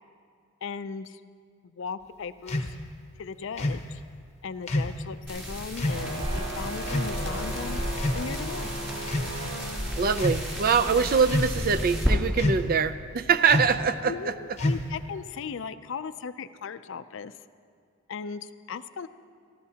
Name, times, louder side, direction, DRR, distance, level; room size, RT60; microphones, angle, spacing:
voice 1, 0.6-1.2 1.6-2.8 3.2-4.0 4.4-7.8 8.1-8.8 14.0-17.3 18.1-19.1, left 5 dB, 60° left, 13 dB, 0.4 m, -37 dB
sound 1, 2.5-2.7 3.6-3.9 4.7-5.0 5.8-6.0 6.9-7.2 7.9-8.5 9.0-9.4 10.1-10.4 11.3-11.7 12.4-12.8 13.5-13.8 14.6-15.0, left 1 dB, 30° left, 0.8 m, -28 dB
sound 2, 5.3-12.1, equal, 10° right, 3.0 m, -33 dB
sound 3, 5.9-11.0, right 1 dB, 65° right, 3.1 m, -36 dB
voice 2, 10.0-14.3, right 6 dB, 40° right, 12 dB, 0.4 m, -24 dB
24.0 x 14.0 x 2.8 m, 2.2 s
head